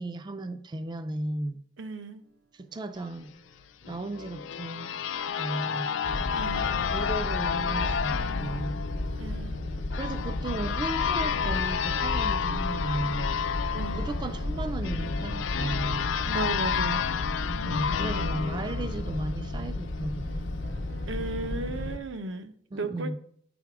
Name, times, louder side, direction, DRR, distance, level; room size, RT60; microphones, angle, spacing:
voice 1, 0.0-1.6 2.5-3.4 3.9-4.9 5.4-6.0 6.9-8.9 9.9-13.4 13.9-16.2 17.6-20.5 22.7-23.2, right 2 dB, 25° right, 0.3 m, -35 dB
voice 2, 1.8-2.2 6.3-6.7 9.2-9.6 13.7-14.0 16.3-17.0 21.1-23.2, right 3 dB, 85° right, 0.6 m, -35 dB
sound 1, 2.2-6.7 7.3-7.4 8.2-21.8, right 2 dB, 70° right, 1.2 m, -54 dB
sound 2, 3.9-19.5, left 7 dB, 90° left, 0.4 m, -31 dB
sound 3, 6.0-22.0, left 2 dB, 65° left, 0.7 m, -33 dB
9.7 x 3.5 x 4.7 m
head